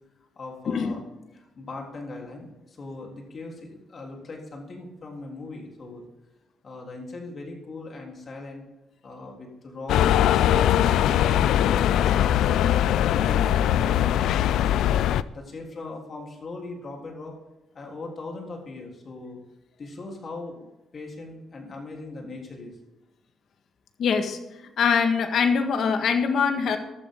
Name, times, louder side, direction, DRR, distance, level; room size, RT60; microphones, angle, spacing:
voice 1, 0.4-1.0 1.3-6.1 6.6-8.6 9.0-10.1 10.3-12.6 13.1-14.9 15.3-17.3 17.7-19.4 19.8-20.7 20.9-22.8, left 3 dB, 40° left, 0 dB, 3.7 m, -39 dB
sound 1, 9.9-15.2, left 11 dB, 90° left, 0.4 m, -21 dB
voice 2, 24.0-24.4 24.8-26.8, left 6 dB, 60° left, 6 dB, 1.6 m, -23 dB
14.5 x 12.0 x 3.8 m, 0.98 s
cardioid pair, 120°, 0 cm